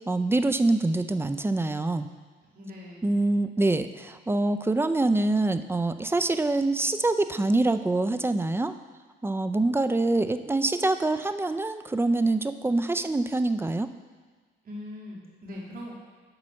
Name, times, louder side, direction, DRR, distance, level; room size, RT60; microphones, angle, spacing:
voice 1, 0.1-2.1 3.0-8.7 9.2-13.9, right 2 dB, 10° right, 10 dB, 0.4 m, -25 dB
voice 2, 2.5-3.1 14.6-15.9, left 1 dB, 45° right, -4 dB, 2.5 m, -41 dB
7.5 x 5.3 x 6.4 m, 1.5 s
cardioid pair, 90°, 20 cm